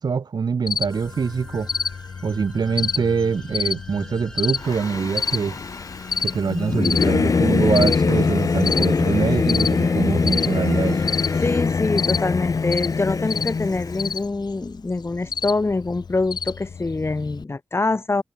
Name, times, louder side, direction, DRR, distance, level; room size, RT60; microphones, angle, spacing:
voice 1, 0.0-1.7 2.2-5.6 6.2-11.1, right 5 dB, 80° right, 3.2 m, -24 dB
Cricket, 0.7-17.4, left 6 dB, 90° left, 5.1 m, -30 dB
sound 1, 0.9-11.6, left 1 dB, 10° left, 4.9 m, -46 dB
Singing / Musical instrument, 4.6-14.2, left 4 dB, 55° left, 0.8 m, -23 dB
voice 2, 11.4-18.2, left 3 dB, 35° left, 2.0 m, -25 dB
wide cardioid pair, 80°, 7 cm